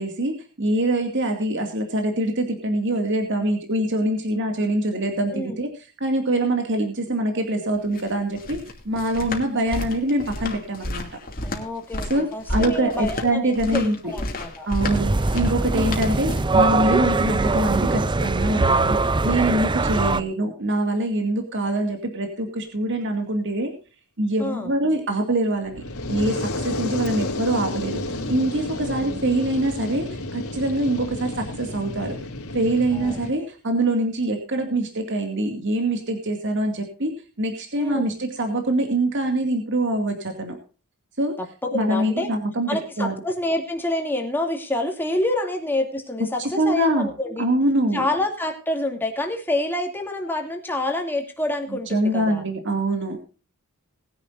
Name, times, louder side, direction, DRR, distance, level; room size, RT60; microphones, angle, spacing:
voice 1, 0.0-5.7 6.0-11.1 12.1-14.1 14.7-19.0 19.2-23.7 24.2-25.8 26.1-28.0 28.3-32.2 32.5-37.1 37.4-40.6 41.2-41.4 41.7-42.7 43.0-43.1 46.4-47.1 47.4-48.0 51.9-53.2, right 1 dB, 55° right, 4 dB, 2.4 m, -24 dB
sound 1, 7.7-16.6, left 1 dB, 40° left, 2.7 m, -32 dB
voice 2, 11.4-14.7 15.7-16.1 20.0-20.3 24.4-24.7 26.6-26.8 27.1-27.3 28.7-29.2 32.9-33.5 37.8-38.1 41.6-42.3 42.7-47.5 47.9-52.4, left 1 dB, 10° left, 2 dB, 2.7 m, -28 dB
sound 2, 14.8-20.2, right 3 dB, 20° right, 0.5 m, -21 dB
Fire, 25.7-33.3, left 2 dB, 80° left, 3.4 m, -31 dB
20.5 x 10.5 x 2.7 m, 0.35 s
head